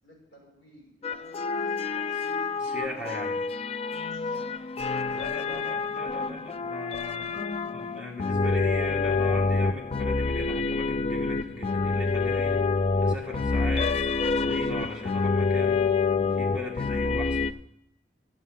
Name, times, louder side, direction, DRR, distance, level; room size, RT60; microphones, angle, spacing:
voice 1, 0.0-2.5 2.9-3.6 3.9-4.7 5.1-5.6 16.9-17.0, left 1 dB, 60° left, -2 dB, 5.7 m, -54 dB
sound 1, 1.0-17.5, left 4 dB, 35° left, 0.4 m, -27 dB
voice 2, 2.6-3.4 5.1-7.4 7.6-12.6 13.0-14.1 14.4-15.9 16.3-17.5, left 1 dB, 5° right, -2 dB, 1.9 m, -38 dB
12.5 x 7.5 x 7.3 m, 0.78 s
head